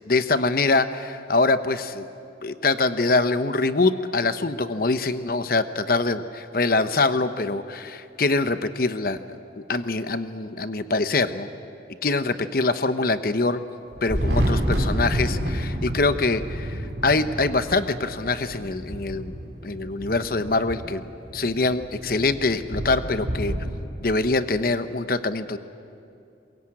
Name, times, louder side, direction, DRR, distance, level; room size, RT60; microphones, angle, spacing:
voice 1, 0.1-2.1 2.4-11.5 12.0-13.6 14.0-19.4 19.6-21.0 21.3-23.5 24.0-25.6, left 3 dB, 55° left, 11 dB, 0.9 m, -24 dB
Thunder, 13.9-23.8, equal, 65° right, 3.1 m, -29 dB
22.0 x 22.0 x 8.7 m, 2.6 s
head